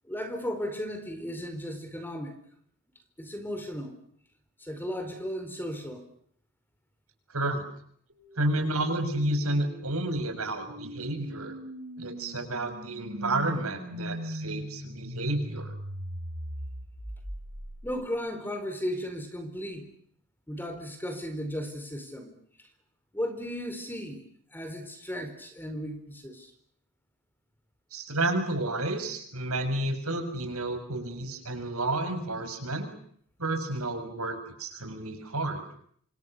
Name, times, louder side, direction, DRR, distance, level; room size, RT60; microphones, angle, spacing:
voice 1, 0.0-2.4 3.2-4.0 4.6-6.1 17.8-19.9 20.5-22.3 23.1-24.2 24.5-26.5, equal, 10° left, 8 dB, 4.2 m, -35 dB
voice 2, 7.3-7.6 8.4-11.5 12.0-15.7 27.9-32.9 33.4-35.6, right 2 dB, 80° right, 6 dB, 6.5 m, -31 dB
sound 1, 8.1-18.2, equal, 60° right, 7.8 m, -40 dB
28.0 x 26.0 x 6.6 m, 0.63 s
head